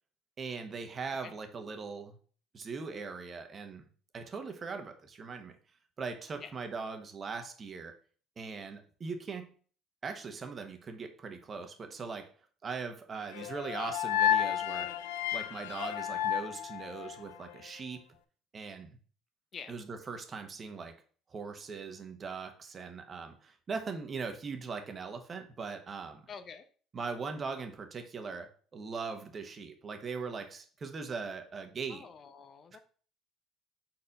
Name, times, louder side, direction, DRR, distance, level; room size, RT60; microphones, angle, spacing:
voice 1, 0.4-2.2 2.5-3.8 4.1-5.6 6.0-8.0 8.4-9.5 10.0-12.3 12.6-14.9 15.3-18.0 18.5-19.0 19.7-21.0 21.3-26.3 26.9-32.1, right 5 dB, 35° right, 1.2 m, -40 dB
sound 1, 13.3-17.5, left 10 dB, 85° left, 0.4 m, -32 dB
voice 2, 26.3-26.7 31.9-32.8, left 6 dB, 45° left, 0.7 m, -47 dB
4.4 x 4.2 x 5.3 m
supercardioid pair, 75°, 0 cm